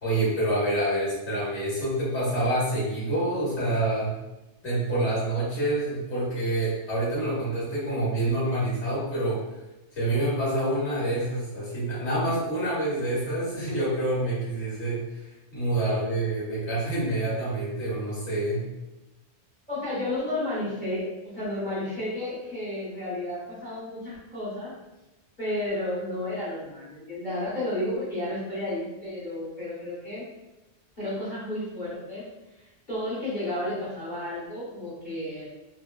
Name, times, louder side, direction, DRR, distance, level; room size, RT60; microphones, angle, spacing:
voice 1, 0.0-4.1 4.6-9.4 9.9-18.7, right 1 dB, 70° left, -8 dB, 1.6 m, -27 dB
voice 2, 19.7-24.7 25.4-30.3 31.0-32.3 32.9-35.5, left 1 dB, 45° left, -10 dB, 1.5 m, -32 dB
3.4 x 2.1 x 2.2 m, 1.0 s
omnidirectional pair, 1.2 m